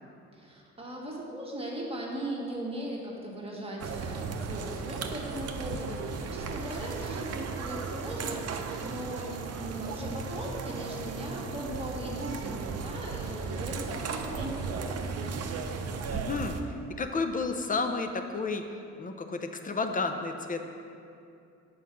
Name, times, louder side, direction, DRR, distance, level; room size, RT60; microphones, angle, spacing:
voice 1, 0.3-15.0, right 1 dB, 20° right, -3 dB, 1.5 m, -38 dB
sound 1, 3.8-16.6, right 5 dB, 55° right, 0.7 m, -36 dB
voice 2, 16.1-20.6, left 3 dB, 25° left, 6 dB, 0.6 m, -32 dB
7.6 x 4.8 x 6.0 m, 2.6 s
cardioid pair, 90°, 30 cm